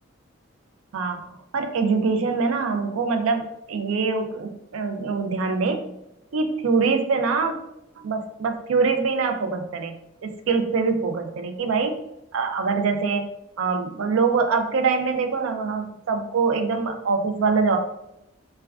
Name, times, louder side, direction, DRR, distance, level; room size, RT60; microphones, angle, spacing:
voice 1, 0.9-5.9 6.3-7.6 8.0-9.9 10.2-12.0 12.3-13.3 13.6-17.8, right 4 dB, 80° right, 6 dB, 0.4 m, -24 dB
3.3 x 2.2 x 2.3 m, 0.85 s
head